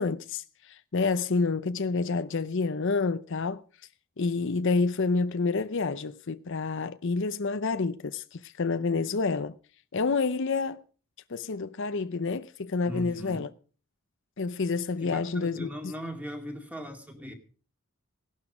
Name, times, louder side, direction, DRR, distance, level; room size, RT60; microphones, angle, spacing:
voice 1, 0.0-3.6 4.2-9.5 9.9-10.8 11.3-13.5 14.4-15.9, left 4 dB, 55° left, 0.6 m, -28 dB
voice 2, 12.8-13.5 15.0-17.3, equal, 5° right, 2.2 m, -39 dB
17.0 x 12.0 x 4.9 m
head